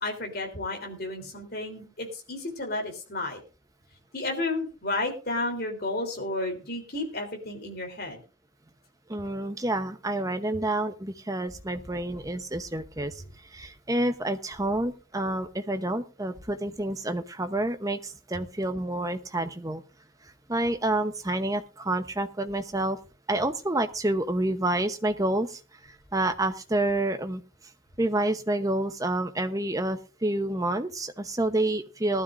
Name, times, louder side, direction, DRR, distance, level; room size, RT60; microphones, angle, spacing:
voice 1, 0.0-3.4 4.1-8.2, left 2 dB, 50° left, 2 dB, 3.5 m, -32 dB
voice 2, 9.1-13.2 13.5-19.8 20.5-23.0 23.3-25.6 26.1-27.4 28.0-32.2, right 1 dB, 15° right, 8 dB, 0.9 m, -28 dB
19.5 x 12.5 x 2.6 m, 0.31 s
head